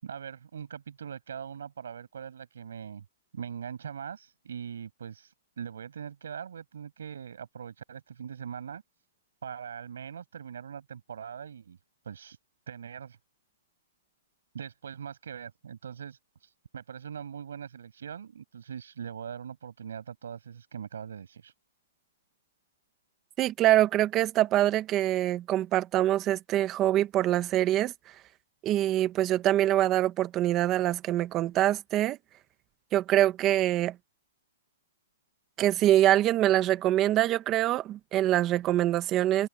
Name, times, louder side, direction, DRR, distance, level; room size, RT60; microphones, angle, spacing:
voice 1, 0.0-3.0 3.3-8.8 9.4-11.8 12.0-12.4 12.7-13.2 14.5-21.5, right 7 dB, 75° right, 6.2 m, -41 dB
voice 2, 23.4-27.9 28.6-32.2 32.9-33.9 35.6-39.5, right 13 dB, 20° right, 1.3 m, -24 dB
hypercardioid pair, 165°, 0 cm